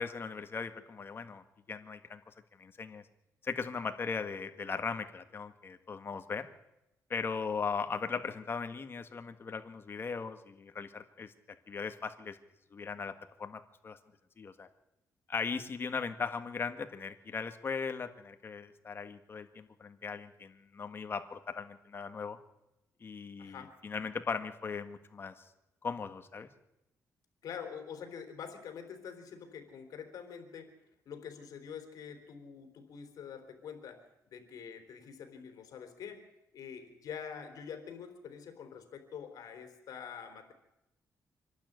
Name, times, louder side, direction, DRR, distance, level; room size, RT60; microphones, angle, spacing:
voice 1, 0.0-2.2 2.6-3.0 3.4-6.5 7.1-11.3 11.7-12.4 12.7-13.1 13.4-14.0 14.4-14.7 15.3-22.4 23.0-25.3 25.8-26.5, left 5 dB, 35° left, 8 dB, 1.8 m, -38 dB
voice 2, 23.4-23.8 27.4-30.8 31.1-36.3 36.5-40.5, left 7 dB, 75° left, 6 dB, 3.9 m, -46 dB
25.5 x 12.0 x 9.5 m, 0.91 s
cardioid pair, 110°, 6 cm